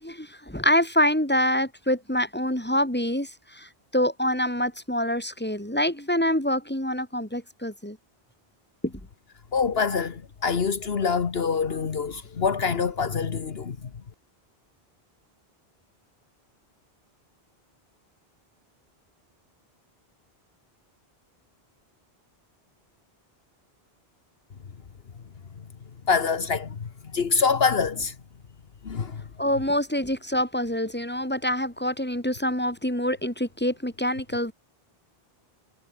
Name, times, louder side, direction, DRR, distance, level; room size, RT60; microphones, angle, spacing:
voice 1, 0.0-8.0 8.8-8.9 29.4-34.5, equal, 10° left, 4.4 m, -26 dB
voice 2, 9.5-13.9 26.1-28.2 28.8-29.2, left 5 dB, 70° left, 1.5 m, -25 dB
omnidirectional pair, 1.0 m